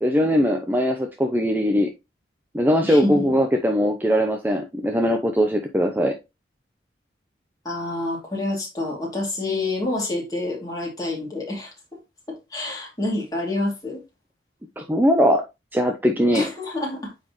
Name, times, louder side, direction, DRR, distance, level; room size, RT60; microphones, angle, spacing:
voice 1, 0.0-1.9 2.5-6.1 14.8-15.4 15.7-16.5, equal, 10° right, 0.6 m, -20 dB
voice 2, 2.8-3.2 7.6-11.7 12.3-14.0 16.3-17.1, left 2 dB, 20° left, 2.7 m, -28 dB
9.0 x 4.2 x 3.1 m
head